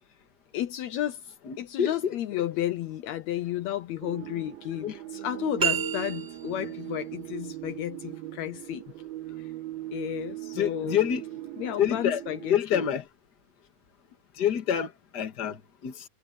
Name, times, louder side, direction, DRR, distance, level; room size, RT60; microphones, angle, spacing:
voice 1, 0.5-1.2 1.6-8.8 9.9-11.0 11.6-12.9, left 12 dB, 90° left, 1.5 m, -32 dB
voice 2, 1.4-2.4 4.8-5.0 10.5-11.2 11.8-12.2 12.5-13.1 14.4-16.0, left 9 dB, 40° left, 1.6 m, -27 dB
sound 1, 4.0-12.6, right 15 dB, 85° right, 3.0 m, -39 dB
sound 2, 5.6-6.7, right 7 dB, 25° right, 1.4 m, -29 dB
omnidirectional pair, 4.3 m